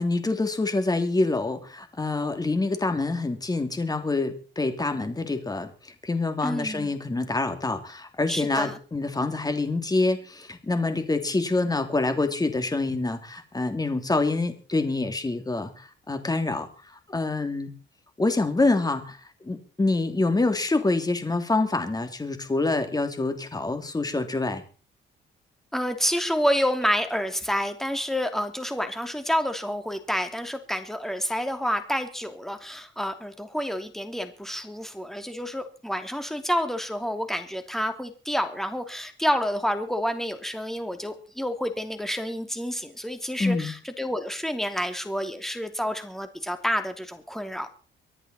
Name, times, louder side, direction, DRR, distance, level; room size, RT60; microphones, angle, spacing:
voice 1, 0.0-17.7 18.2-24.6 43.4-43.7, left 3 dB, 20° left, 7 dB, 3.1 m, -26 dB
voice 2, 6.4-6.9 8.3-8.8 25.7-47.7, equal, ahead, 7 dB, 2.9 m, -29 dB
24.5 x 10.0 x 4.4 m, 0.37 s
cardioid pair, 90°, 20 cm